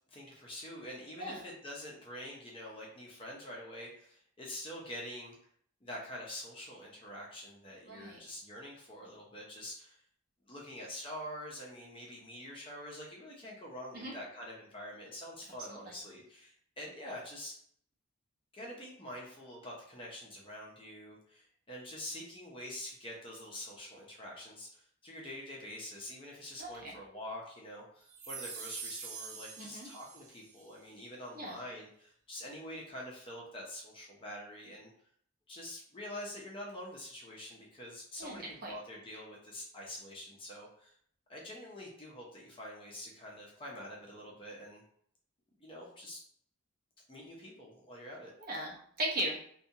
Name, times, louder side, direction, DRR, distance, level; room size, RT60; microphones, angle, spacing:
voice 1, 0.1-5.3 5.8-10.0 10.5-17.5 18.5-34.9 35.5-40.9 41.3-44.8 45.6-46.2 47.1-48.3, left 1 dB, 25° left, -3 dB, 0.5 m, -46 dB
voice 2, 7.9-8.2 13.9-14.1 15.8-16.0 26.6-26.9 29.6-29.9 31.3-31.6 38.2-38.7 48.4-49.4, right 1 dB, 40° right, -3 dB, 0.7 m, -38 dB
sound 1, 28.1-30.6, right 5 dB, 85° right, 0.5 m, -45 dB
2.7 x 2.2 x 2.7 m, 0.64 s
head